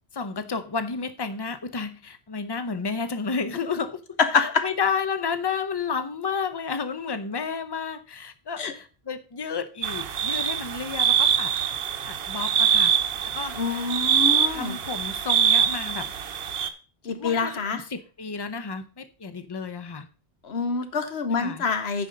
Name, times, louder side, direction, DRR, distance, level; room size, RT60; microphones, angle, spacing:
voice 1, 0.1-4.0 4.3-11.5 12.0-12.9 13.2-13.9 14.5-16.1 17.0-20.1 21.4-21.6, left 5 dB, 30° left, 0.7 m, -31 dB
sound 1, 9.8-16.7, right 8 dB, 75° right, 1.0 m, -24 dB
voice 2, 13.6-14.8 17.0-17.8 20.4-22.1, left 5 dB, 90° left, 1.3 m, -26 dB
9.6 x 5.0 x 5.2 m
omnidirectional pair, 1.0 m